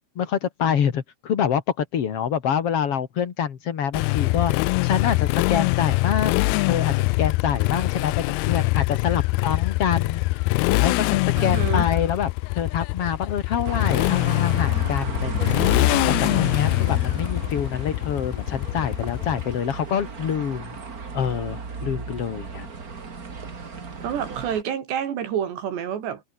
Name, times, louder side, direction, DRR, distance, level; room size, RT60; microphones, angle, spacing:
voice 1, 0.2-4.5 4.8-20.8 21.1-22.7, left 8 dB, 45° left, 2.1 m, -26 dB
Motorcycle, 3.9-19.7, left 23 dB, 80° left, 2.3 m, -23 dB
voice 2, 11.4-11.8 24.0-26.2, right 9 dB, 85° right, 5.0 m, -28 dB
sound 1, 13.6-24.6, right 5 dB, 30° right, 1.9 m, -34 dB
omnidirectional pair, 4.8 m